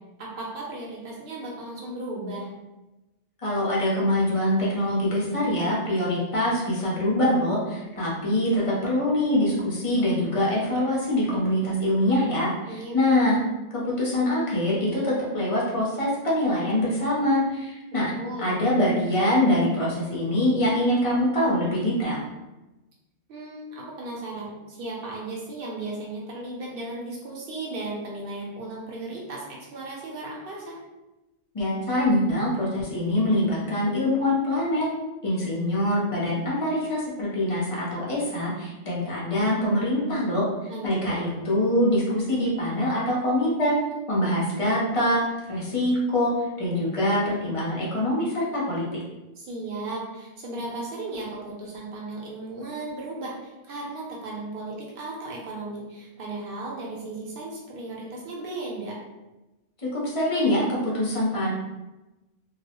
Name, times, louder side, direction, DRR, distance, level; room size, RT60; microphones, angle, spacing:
voice 1, 0.2-2.5 12.7-13.0 18.2-18.5 23.3-30.8 40.7-41.2 49.4-59.0, right 2 dB, 55° right, -3 dB, 0.8 m, -35 dB
voice 2, 3.4-13.4 13.7-18.1 18.4-22.2 31.5-34.9 35.2-40.4 40.8-43.7 44.1-45.2 45.5-46.3 46.6-49.0 59.8-61.5, left 1 dB, 40° left, -5 dB, 0.5 m, -24 dB
2.3 x 2.0 x 2.9 m, 1.0 s
omnidirectional pair, 1.3 m